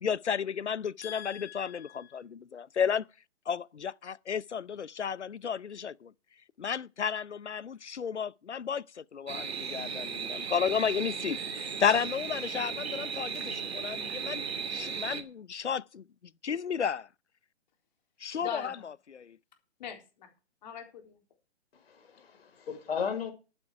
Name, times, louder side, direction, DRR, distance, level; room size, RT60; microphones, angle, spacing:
voice 1, 0.0-3.1 3.5-6.1 6.6-14.4 14.7-16.0 16.4-17.1 18.2-18.7 19.1-19.4, left 7 dB, 85° left, 0.8 m, -32 dB
voice 2, 1.0-2.2 18.4-18.8 19.8-20.3 20.6-21.2, left 8 dB, 40° left, 3.9 m, -42 dB
sound 1, 9.3-15.2, right 6 dB, 65° right, 2.4 m, -36 dB
voice 3, 21.7-23.3, left 6 dB, 60° left, 4.8 m, -35 dB
11.5 x 9.9 x 4.9 m
figure-of-eight pair, 140°, 34 cm